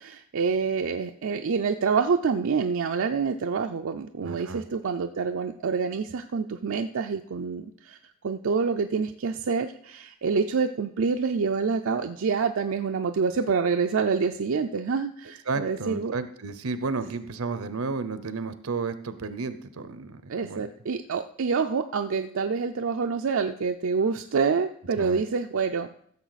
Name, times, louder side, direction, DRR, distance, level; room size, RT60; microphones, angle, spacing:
voice 1, 0.0-8.0 8.2-16.1 20.3-25.9, right 5 dB, 65° right, 5 dB, 0.5 m, -27 dB
voice 2, 4.2-4.6 15.5-20.7 25.0-25.2, right 4 dB, 80° right, 11 dB, 0.8 m, -32 dB
15.0 x 6.9 x 4.1 m, 0.65 s
head